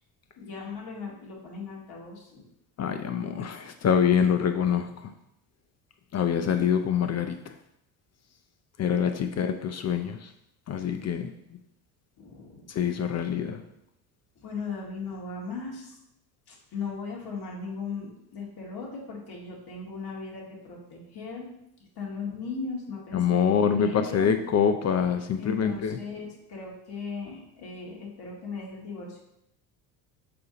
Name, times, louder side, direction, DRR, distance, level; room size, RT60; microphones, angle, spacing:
voice 1, 0.4-2.5 9.2-9.4 12.2-12.8 14.4-16.0 16.5-21.5 22.0-24.4 25.4-29.2, left 4 dB, 50° left, -2 dB, 2.3 m, -38 dB
voice 2, 2.8-4.9 6.1-7.4 8.8-10.3 10.7-11.3 12.7-13.6 23.1-26.0, left 7 dB, 35° left, 7 dB, 0.5 m, -25 dB
6.8 x 2.7 x 5.0 m, 0.80 s
hypercardioid pair, 75°, 47 cm